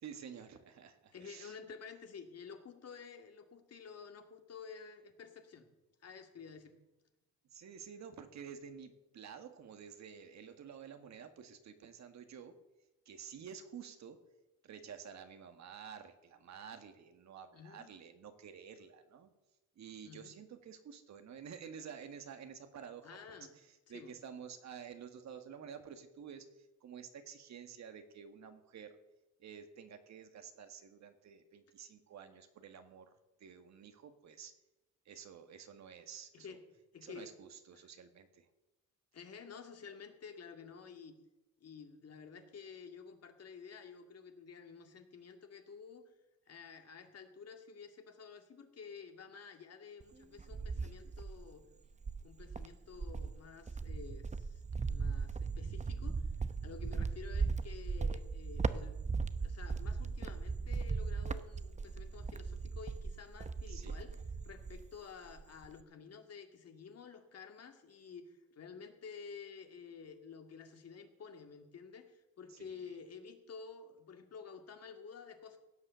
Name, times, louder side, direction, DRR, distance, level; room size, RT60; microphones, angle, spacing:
voice 1, 0.0-1.6 7.5-12.6 13.0-14.2 14.6-19.3 19.7-29.0 29.4-33.1 33.4-34.5 35.0-36.6 37.0-38.5 63.7-64.0 72.5-73.0, right 7 dB, 65° right, 8 dB, 1.8 m, -51 dB
voice 2, 1.1-5.7 6.0-6.7 17.5-17.9 20.1-20.3 23.0-23.6 23.9-24.1 36.3-36.6 36.9-37.3 37.7-37.8 39.1-41.2 41.6-46.1 46.5-51.7 52.2-56.3 56.6-59.0 59.3-64.2 64.4-75.6, left 6 dB, 55° left, 5 dB, 2.3 m, -51 dB
Cricket, 50.0-51.5 52.0-65.0 65.3-65.8, right 4 dB, 25° right, 0.8 m, -38 dB
16.5 x 7.8 x 7.0 m, 1.0 s
cardioid pair, 90°, 30 cm